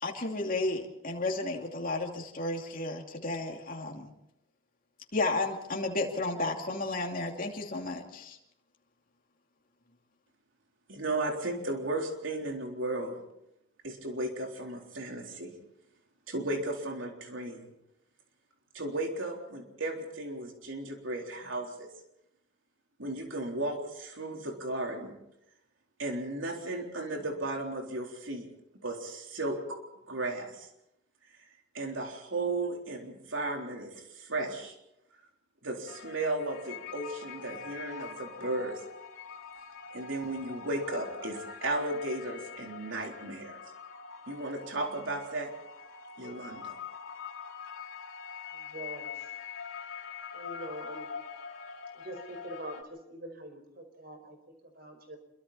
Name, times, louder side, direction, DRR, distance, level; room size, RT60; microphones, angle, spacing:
voice 1, 0.0-4.1 5.1-8.4, left 2 dB, 45° left, 1 dB, 2.7 m, -33 dB
voice 2, 10.9-13.2 13.8-15.5 16.3-17.7 18.7-21.9 23.0-25.1 26.0-28.5 28.8-29.8 30.1-30.7 31.7-34.7 35.6-38.8 39.9-43.6 44.3-45.5 46.2-46.8, right 2 dB, 75° right, 2 dB, 3.8 m, -35 dB
sound 1, 35.9-52.8, left 6 dB, 85° left, 3.0 m, -44 dB
voice 3, 48.5-49.2 50.3-51.1 52.0-55.2, right 1 dB, 50° right, 5 dB, 5.0 m, -44 dB
27.0 x 23.0 x 4.3 m, 0.83 s
head